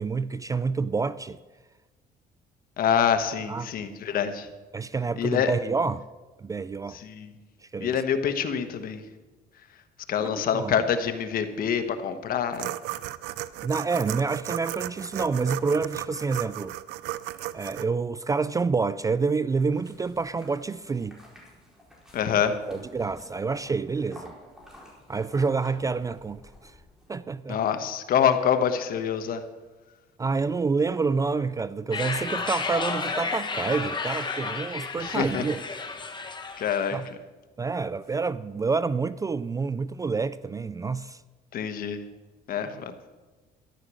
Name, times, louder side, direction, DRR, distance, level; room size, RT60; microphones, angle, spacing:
voice 1, 0.0-1.4 3.5-3.9 4.7-6.0 6.4-7.0 7.7-8.0 10.3-10.8 13.6-16.7 17.5-21.2 22.7-24.3 25.1-26.7 27.1-27.6 30.2-35.6 36.9-37.0 37.6-41.2, right 4 dB, 20° right, 0.3 m, -28 dB
voice 2, 2.8-4.5 5.2-5.5 6.9-7.3 7.8-9.0 10.1-12.7 22.1-22.5 27.5-29.4 35.0-35.4 36.6-37.0 41.5-42.0 42.5-42.9, left 8 dB, 60° left, 1.3 m, -26 dB
sound 1, 12.5-17.9, right 15 dB, 90° right, 0.5 m, -35 dB
sound 2, 19.7-27.1, left 1 dB, 5° right, 4.8 m, -51 dB
sound 3, 31.9-37.0, left 4 dB, 25° left, 1.5 m, -32 dB
13.5 x 11.0 x 6.3 m
cardioid pair, 110°, 17 cm